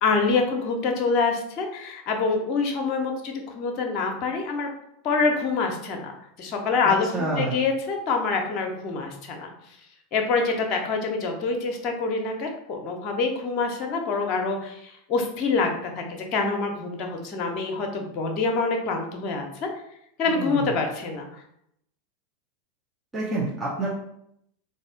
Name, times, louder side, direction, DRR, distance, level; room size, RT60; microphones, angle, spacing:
voice 1, 0.0-4.7 5.0-6.1 6.4-7.1 7.4-9.5 10.1-16.0 16.3-19.7 20.2-21.4, left 4 dB, 40° left, 3 dB, 0.8 m, -26 dB
voice 2, 7.1-7.5 20.3-20.7 23.1-23.9, right 2 dB, 15° right, -6 dB, 0.9 m, -27 dB
4.1 x 2.7 x 3.8 m, 0.75 s
figure-of-eight pair, 85°, 0 cm